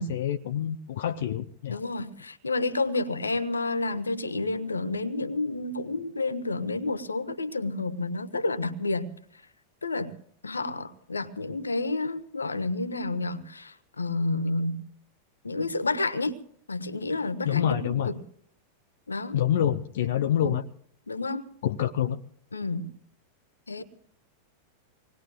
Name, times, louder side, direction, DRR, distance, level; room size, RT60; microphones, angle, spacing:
voice 1, 0.0-1.8 17.4-18.1 19.3-20.6 21.6-22.2, left 10 dB, 55° left, 0.6 m, -27 dB
voice 2, 1.7-9.1 9.8-10.1 10.4-14.8 15.4-16.4 16.7-18.2 19.1-19.4 20.4-20.6 21.1-21.4 22.5-22.9 23.7-23.8, left 2 dB, 75° left, 1.0 m, -30 dB
26.0 x 19.5 x 2.3 m
figure-of-eight pair, 90°, 0 cm